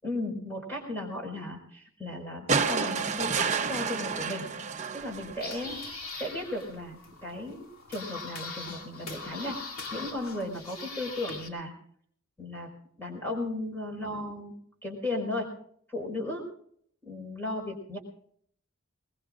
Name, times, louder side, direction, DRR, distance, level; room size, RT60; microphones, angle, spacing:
voice 1, 0.0-4.5 4.9-5.8 6.2-9.6 9.9-11.7 12.4-12.7 13.0-14.5 14.8-15.5 15.9-16.5 17.0-18.0, left 1 dB, 10° left, -1 dB, 4.9 m, -35 dB
sound 1, 2.5-5.8 7.1-7.2, right 5 dB, 35° right, 0.9 m, -30 dB
sound 2, 5.0-11.5, left 3 dB, 80° left, 2.5 m, -41 dB
22.5 x 20.5 x 2.5 m, 0.63 s
head